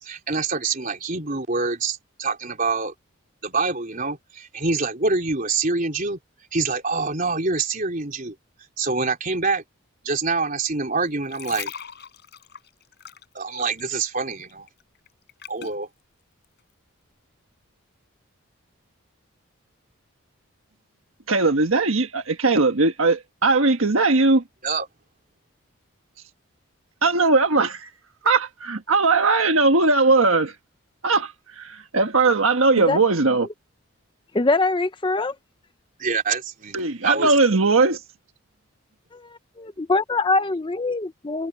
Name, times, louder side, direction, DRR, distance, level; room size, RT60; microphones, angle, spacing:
voice 1, 0.0-2.9 3.4-6.2 6.5-8.4 8.8-9.6 10.0-11.7 13.3-14.7 15.5-15.9 24.6-24.9 36.0-37.3, right 4 dB, 40° right, 4.1 m, -25 dB
sound 1, 11.1-14.1 14.4-15.8 16.4-16.6, left 8 dB, 50° left, 5.6 m, -39 dB
voice 2, 21.3-24.4 27.0-27.9 28.2-30.6 31.0-33.5 36.7-38.0, right 3 dB, 70° right, 1.5 m, -19 dB
voice 3, 34.3-35.3 39.1-41.5, left 3 dB, 20° left, 0.5 m, -23 dB
head